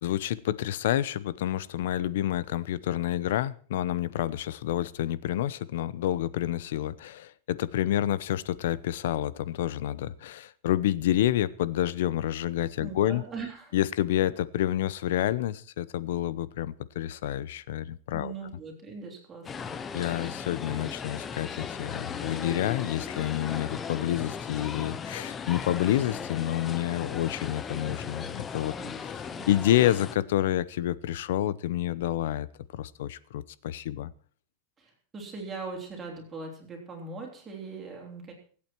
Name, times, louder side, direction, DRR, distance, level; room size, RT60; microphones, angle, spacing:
voice 1, 0.0-13.2 13.7-18.3 19.9-28.7 29.5-32.5 32.7-34.1, left 12 dB, 65° left, 19 dB, 0.8 m, -28 dB
voice 2, 12.8-13.7 18.1-19.8 28.7-28.9 29.2-29.5 34.8-38.3, right 4 dB, 10° right, 0 dB, 3.5 m, -40 dB
sound 1, 19.4-30.2, left 6 dB, 15° left, 0.6 m, -37 dB
23.5 x 8.6 x 4.6 m, 0.43 s
supercardioid pair, 175°, 0 cm